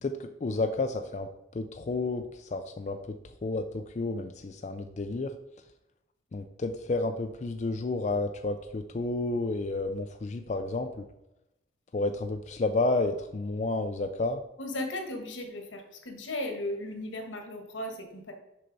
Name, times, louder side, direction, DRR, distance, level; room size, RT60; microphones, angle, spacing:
voice 1, 0.0-3.0 3.4-5.3 6.3-11.1 11.9-14.4, left 2 dB, 40° left, 7 dB, 0.4 m, -31 dB
voice 2, 14.6-18.3, left 1 dB, 85° left, 4 dB, 1.4 m, -36 dB
6.4 x 5.7 x 4.0 m, 0.89 s
head